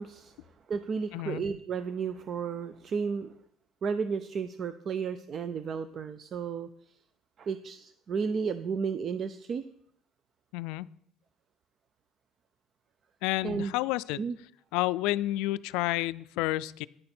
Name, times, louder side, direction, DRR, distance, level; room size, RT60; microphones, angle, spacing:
voice 1, 0.0-3.3 3.8-6.7 7.4-9.6 13.4-13.7 14.1-14.4, right 5 dB, 30° right, 12 dB, 0.4 m, -33 dB
voice 2, 1.1-1.4 10.5-10.9 13.2-14.2 14.7-16.9, left 18 dB, 85° left, 17 dB, 0.3 m, -30 dB
10.5 x 9.9 x 4.3 m, 0.69 s
cardioid pair, 165°, 0 cm